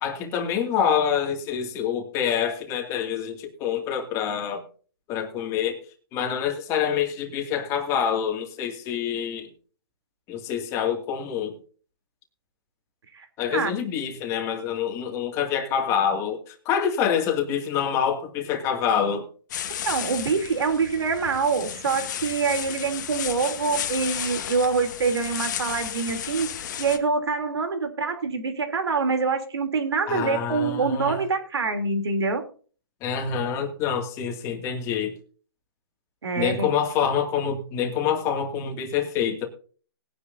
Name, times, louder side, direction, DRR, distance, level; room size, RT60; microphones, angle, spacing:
voice 1, 0.0-4.6 5.1-5.8 6.1-9.5 10.3-11.6 13.4-19.3 30.1-31.2 33.0-35.2 36.4-39.5, left 8 dB, 20° left, 3 dB, 2.4 m, -26 dB
sound 1, 19.5-27.0, left 9 dB, 45° left, 1.8 m, -33 dB
voice 2, 19.8-26.5 26.8-32.4 36.2-36.7, right 4 dB, 75° right, 6 dB, 3.3 m, -25 dB
20.5 x 10.0 x 2.7 m, 0.40 s
hypercardioid pair, 150°, 14 cm